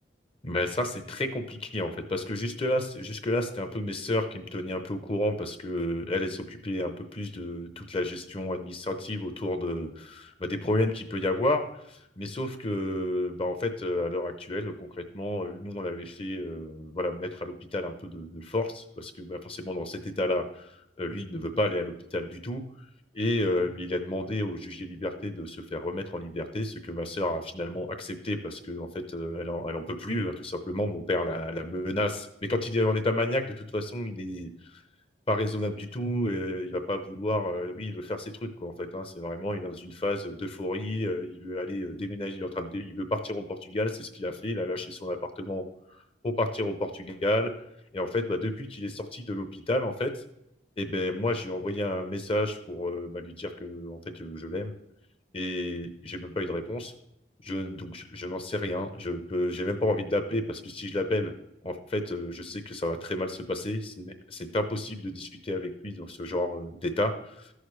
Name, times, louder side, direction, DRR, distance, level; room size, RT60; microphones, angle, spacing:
voice 1, 0.4-14.9 15.1-22.6 23.1-34.8 35.3-47.5 47.9-50.2 50.8-54.7 55.3-56.9 57.4-61.3 61.6-67.5, left 1 dB, 30° left, 7 dB, 0.7 m, -31 dB
13.5 x 6.5 x 3.2 m, 0.82 s
head